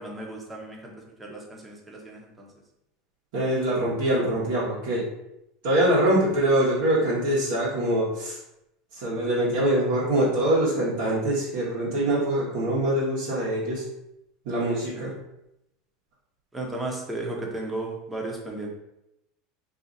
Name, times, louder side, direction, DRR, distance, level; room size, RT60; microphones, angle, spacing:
voice 1, 0.0-2.5 14.9-15.1 16.5-18.7, right 2 dB, 10° right, -1 dB, 0.8 m, -35 dB
voice 2, 3.3-5.0 5.6-8.4 8.9-13.8 14.4-15.1, right 1 dB, 70° right, -8 dB, 1.1 m, -24 dB
2.7 x 2.4 x 3.9 m, 0.86 s
supercardioid pair, 110°, 0 cm